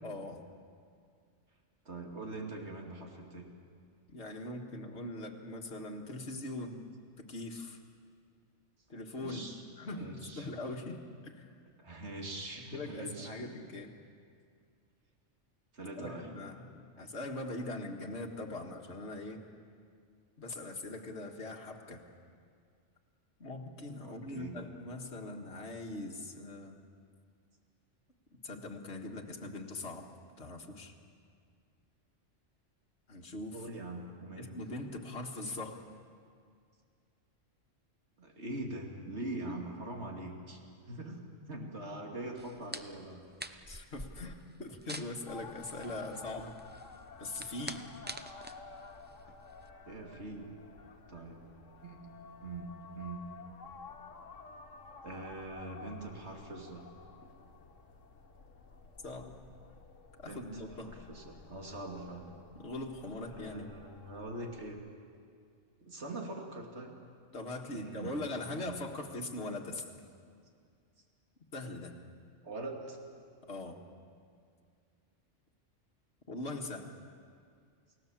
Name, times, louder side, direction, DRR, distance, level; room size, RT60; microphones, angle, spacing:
voice 1, 0.0-0.4 4.1-6.9 7.2-7.8 8.9-11.5 12.6-13.9 16.0-19.5 20.4-22.0 23.4-26.8 28.4-30.1 30.4-30.9 33.1-33.6 34.4-35.8 39.5-39.6 43.7-46.5 47.2-47.9 59.0-59.4 60.2-60.9 62.6-63.7 67.3-70.0 71.5-72.0 73.4-73.8 76.3-76.9, left 2 dB, 60° left, 1 dB, 2.0 m, -41 dB
voice 2, 1.8-3.4 9.1-9.6 9.9-10.5 11.8-13.5 15.7-16.3 24.0-24.6 33.5-34.5 38.2-40.6 40.9-41.2 41.5-43.2 49.9-50.5 50.9-51.4 51.8-52.1 52.4-53.3 55.0-56.9 57.2-57.3 60.3-62.4 63.3-64.8 65.8-66.9 67.7-68.1 68.6-68.7 72.4-73.0, right 2 dB, 60° right, 1 dB, 2.9 m, -43 dB
sound 1, 42.4-49.7, right 1 dB, 10° right, 0.5 m, -47 dB
sound 2, 45.3-64.7, left 4 dB, 80° left, 1.8 m, -52 dB
29.5 x 17.5 x 7.4 m, 2.2 s
omnidirectional pair, 1.3 m